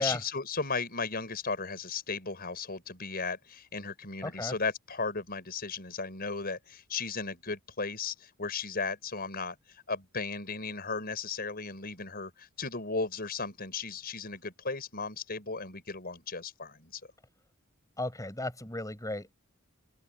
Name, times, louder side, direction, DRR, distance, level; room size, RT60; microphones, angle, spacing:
voice 1, 0.0-17.0, left 4 dB, 45° left, 5.6 m, -35 dB
voice 2, 4.2-4.5 18.0-19.3, left 1 dB, 15° left, 7.7 m, -34 dB
open air
head